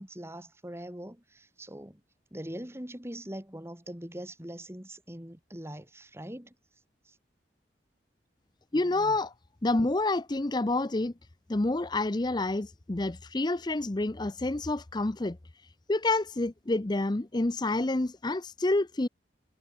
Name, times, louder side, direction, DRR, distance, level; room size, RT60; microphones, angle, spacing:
voice 1, 0.0-2.0 2.3-6.5 7.1-7.2, right 1 dB, 15° right, 2.8 m, -42 dB
voice 2, 8.7-9.3 9.6-11.1 11.5-15.4 15.9-19.1, left 2 dB, 25° left, 0.6 m, -28 dB
head